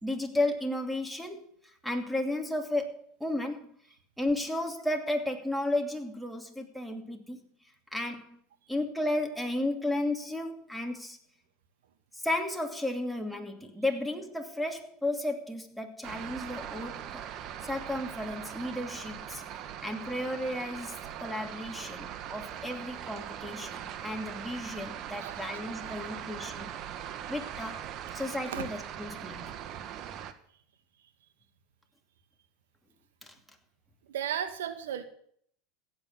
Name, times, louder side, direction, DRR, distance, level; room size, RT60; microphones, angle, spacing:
voice 1, 0.0-1.5 1.8-3.7 4.2-7.4 7.9-8.4 8.7-11.2 12.2-17.2 17.6-19.4 19.8-26.7 27.3-27.9 28.1-29.5 33.2-33.3, left 1 dB, ahead, 2.6 m, -33 dB
sound 1, 16.0-30.3, right 10 dB, 45° right, 1.5 m, -41 dB
voice 2, 25.2-26.0 28.5-28.7 34.1-35.0, right 9 dB, 80° right, 2.2 m, -36 dB
16.0 x 8.6 x 7.3 m
hypercardioid pair, 95°, 0 cm